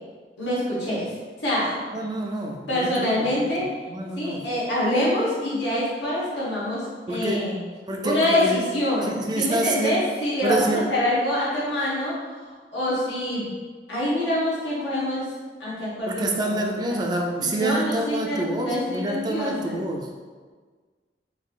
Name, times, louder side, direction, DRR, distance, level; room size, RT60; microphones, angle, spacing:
voice 1, 0.4-1.1 1.4-1.8 2.7-3.7 4.2-7.6 8.0-13.5 13.9-15.2 15.6-17.0 17.4-19.8, left 1 dB, 80° left, -7 dB, 1.2 m, -25 dB
voice 2, 1.9-4.4 7.1-7.5 7.9-8.6 9.0-9.9 10.4-10.8 16.1-20.1, right 2 dB, 25° right, 1 dB, 0.3 m, -27 dB
3.6 x 2.6 x 2.4 m, 1.5 s
head